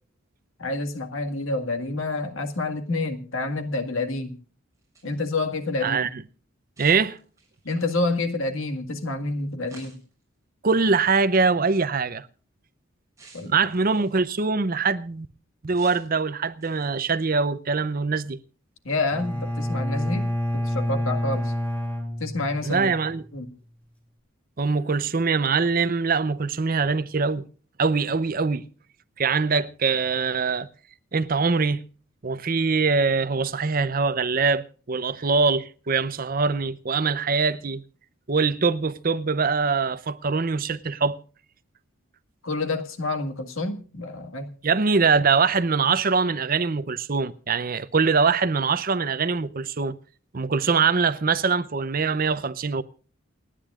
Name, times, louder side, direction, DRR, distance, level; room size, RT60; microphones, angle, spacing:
voice 1, 0.6-4.4 5.0-6.0 7.6-10.0 13.3-13.5 18.8-21.5 22.2-22.9 23.3-23.5 42.4-44.5, left 2 dB, 80° left, 1.8 m, -28 dB
sound 1, 4.7-5.3 6.8-7.7 9.7-10.2 11.2-11.4 13.2-14.2 15.7-16.2 16.6-17.1, right 4 dB, 15° right, 6.7 m, -51 dB
voice 2, 5.8-6.2 6.8-7.2 10.6-12.3 13.5-15.3 15.6-18.4 22.6-23.2 24.6-27.4 27.8-28.6 29.2-30.7 31.1-31.8 32.2-37.8 38.3-41.2 44.6-50.0 50.3-52.8, right 4 dB, 45° right, 0.6 m, -23 dB
Bowed string instrument, 19.1-23.0, left 1 dB, 5° left, 2.7 m, -28 dB
29.0 x 10.0 x 2.4 m
head